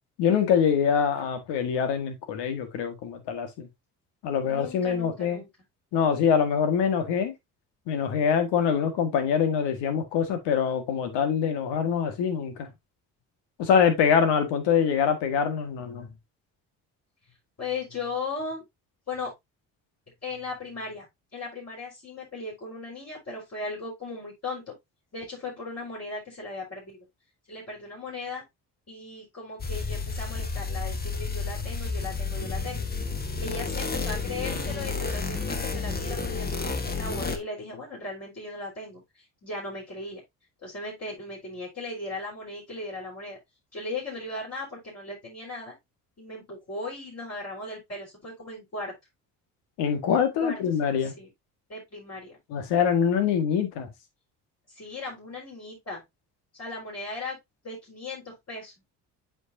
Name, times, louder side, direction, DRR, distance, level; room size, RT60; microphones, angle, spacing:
voice 1, 0.2-3.7 4.2-5.4 5.9-7.3 7.9-12.7 13.6-16.1 49.8-51.1 52.5-53.9, left 7 dB, 80° left, 1.8 m, -24 dB
voice 2, 4.5-5.5 17.6-18.6 19.1-19.3 20.2-21.0 21.3-24.7 25.1-27.1 27.5-28.4 28.9-32.9 33.4-40.2 40.6-43.4 43.7-45.7 46.2-48.9 50.4-51.3 51.7-52.4 54.7-56.0 56.5-57.4 57.6-58.7, left 3 dB, 35° left, 4.6 m, -37 dB
sound 1, 29.6-37.4, left 4 dB, 20° left, 1.4 m, -31 dB
8.0 x 5.4 x 2.7 m
supercardioid pair, 65°, 42 cm